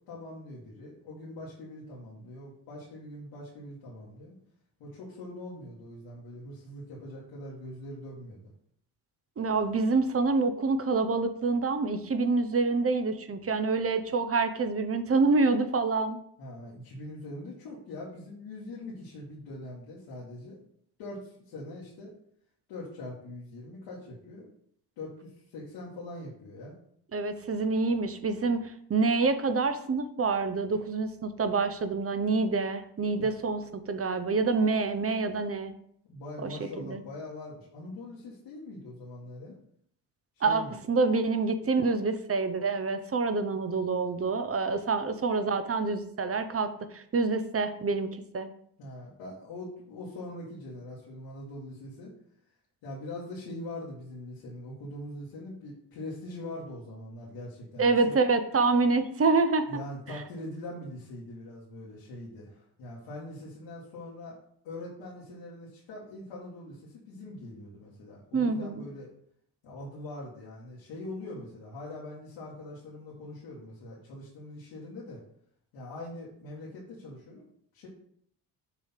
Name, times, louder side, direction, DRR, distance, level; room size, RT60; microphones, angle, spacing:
voice 1, 0.1-4.4 4.8-8.5 16.4-20.6 21.0-22.1 22.7-24.5 25.0-26.8 33.2-33.4 36.1-39.6 40.4-40.8 48.8-52.1 52.8-58.2 59.7-64.4 64.6-69.1 69.6-75.2 75.7-77.5 77.7-77.9, left 1 dB, 80° left, -6 dB, 2.0 m, -42 dB
voice 2, 9.4-16.2 27.1-35.7 36.4-37.0 40.4-40.6 40.9-48.5 57.8-59.6 68.3-68.8, right 3 dB, 30° right, 9 dB, 0.9 m, -27 dB
6.8 x 3.2 x 5.8 m, 0.67 s
supercardioid pair, 60°, 44 cm